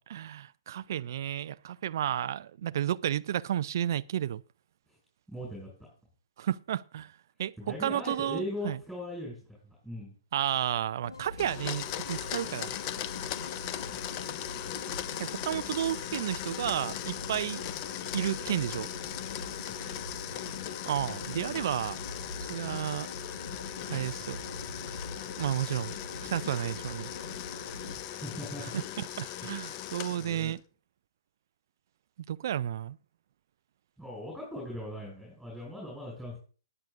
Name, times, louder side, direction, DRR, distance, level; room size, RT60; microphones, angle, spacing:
voice 1, 0.1-4.4 6.4-7.1 7.4-8.8 10.3-12.7 15.2-17.6 18.1-18.9 20.9-22.0 22.4-23.1 23.9-24.4 25.4-25.9 26.2-27.1 28.7-30.6 32.3-33.0, right 11 dB, 55° right, 0.4 m, -32 dB
voice 2, 5.3-5.7 7.6-9.4 9.6-10.1 19.7-20.1 24.0-24.5 27.9-28.6 29.4-29.5 30.2-30.5 34.0-36.4, left 1 dB, ahead, 6.3 m, -40 dB
sound 1, 11.0-28.0, left 2 dB, 85° left, 1.9 m, -44 dB
Domestic sounds home sounds, 11.4-30.6, left 11 dB, 35° left, 0.6 m, -39 dB
19.0 x 9.8 x 2.6 m
hypercardioid pair, 130°, 2 cm